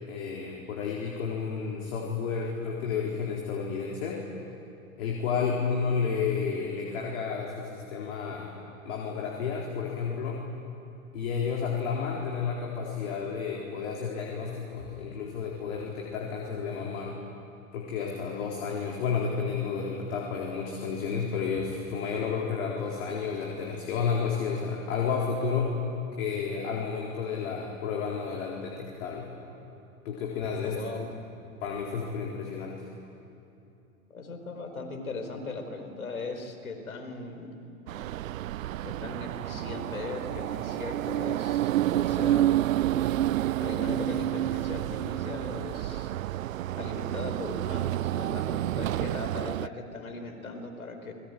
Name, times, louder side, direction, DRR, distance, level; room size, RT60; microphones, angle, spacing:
voice 1, 0.1-4.2 5.0-8.6 8.8-10.4 11.1-17.2 17.7-25.8 26.2-29.3 30.0-31.1 31.6-32.9, left 6 dB, 55° left, -2 dB, 4.2 m, -31 dB
voice 2, 30.6-31.1 34.1-37.6 38.8-42.6 43.6-46.1 46.7-51.1, left 3 dB, 75° left, 6 dB, 4.5 m, -38 dB
sound 1, 37.9-49.7, right 14 dB, 70° right, 0.5 m, -29 dB
28.0 x 21.0 x 9.3 m, 2.9 s
figure-of-eight pair, 90°, 42 cm